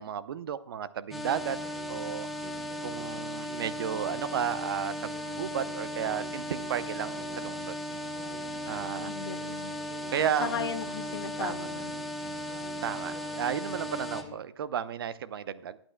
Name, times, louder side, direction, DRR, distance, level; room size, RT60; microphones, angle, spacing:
voice 1, 0.0-1.6 1.9-2.3 2.8-5.1 5.4-7.7 8.6-9.1 10.1-11.0 11.4-11.7 12.8-15.8, right 8 dB, 55° right, 15 dB, 0.7 m, -33 dB
sound 1, 1.1-14.2, equal, ahead, 1.0 m, -37 dB
sound 2, 1.3-14.3, right 1 dB, 20° right, 5.3 m, -49 dB
voice 2, 8.6-9.7 10.4-12.1, left 7 dB, 65° left, 8 dB, 1.4 m, -37 dB
24.5 x 9.0 x 2.2 m, 0.65 s
hypercardioid pair, 140°, 14 cm